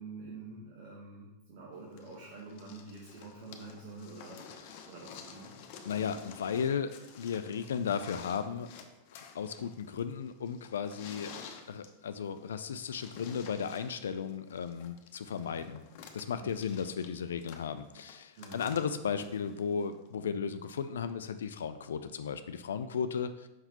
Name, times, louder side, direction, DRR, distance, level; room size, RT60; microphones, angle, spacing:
voice 1, 0.0-5.5 15.2-15.6 16.3-16.7 18.4-18.7, right 3 dB, 60° right, -2 dB, 1.2 m, -47 dB
sound 1, 2.0-20.1 21.1-21.2, left 7 dB, 55° left, 0.8 m, -51 dB
voice 2, 5.9-8.7 9.1-11.3 11.7-15.8 16.1-23.5, left 7 dB, 75° left, 10 dB, 0.3 m, -35 dB
5.8 x 5.5 x 2.9 m, 0.95 s
hypercardioid pair, 100°, 0 cm